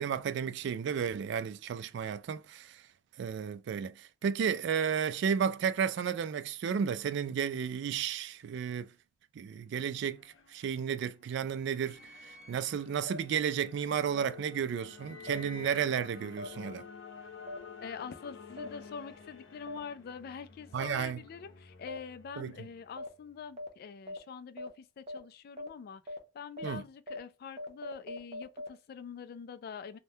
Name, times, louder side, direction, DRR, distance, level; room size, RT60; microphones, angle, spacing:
voice 1, 0.0-2.8 3.2-8.9 9.4-10.2 10.5-12.0 12.5-16.9 20.7-21.2 22.4-22.5 26.6-26.8, right 7 dB, 65° right, 0.3 m, -32 dB
sound 1, 9.6-23.4, left 5 dB, 90° left, 0.7 m, -51 dB
sound 2, 13.1-13.2 14.2-14.3 15.3-15.4 16.4-16.5 17.5-17.6 18.6-18.7 19.7-19.8 20.8-20.9 21.9-22.0 23.0-23.1 23.6-23.7 24.1-24.2 24.6-24.7 25.1-25.2 25.6-25.7 26.1-26.2 26.6-26.7 27.1-27.2 27.6-28.7, left 1 dB, 35° right, 0.7 m, -40 dB
voice 2, 17.8-30.0, left 6 dB, 55° left, 0.3 m, -45 dB
3.3 x 2.2 x 2.7 m
head